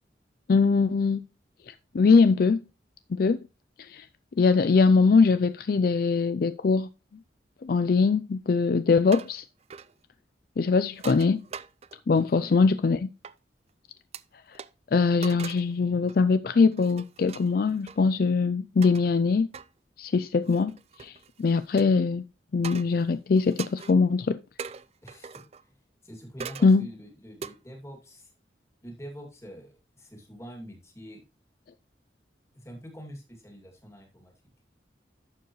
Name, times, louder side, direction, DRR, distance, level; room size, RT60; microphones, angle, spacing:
voice 1, 0.5-1.2 1.7-2.6 3.1-3.4 3.8-4.1 4.4-6.9 7.6-9.4 10.6-11.4 12.1-13.1 14.5-14.6 14.9-19.5 20.0-20.7 21.0-22.2 22.5-24.4 26.6-26.9, left 4 dB, 50° left, 0.4 m, -22 dB
sound 1, 9.0-9.4 9.7-9.9 10.9-12.1 13.2-13.3 14.1-14.2 14.5-14.7 15.2-15.7 16.1-16.3 16.7-18.0 18.8-19.0 19.5-19.7 20.4-21.9 22.6-23.0 23.4-24.0 24.6-25.6 26.4-26.7 27.4-27.5, right 6 dB, 35° right, 0.3 m, -41 dB
voice 2, 12.1-12.5 25.0-25.8 26.0-28.3 28.8-31.2 32.5-34.3, equal, 15° left, 2.4 m, -45 dB
11.5 x 7.0 x 3.1 m
head